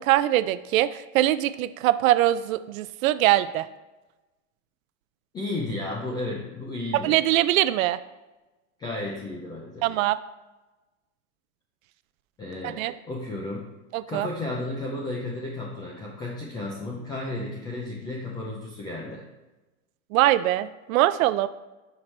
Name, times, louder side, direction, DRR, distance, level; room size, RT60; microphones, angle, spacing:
voice 1, 0.0-3.7 7.0-8.0 9.8-10.2 12.6-12.9 13.9-14.3 20.1-21.5, right 14 dB, 85° right, 14 dB, 0.5 m, -22 dB
voice 2, 5.3-7.3 8.8-9.8 12.4-12.8 13.0-13.7 14.1-19.2, left 2 dB, 10° left, -2 dB, 0.4 m, -33 dB
11.5 x 4.7 x 3.2 m, 1.1 s
supercardioid pair, 160°, 40 cm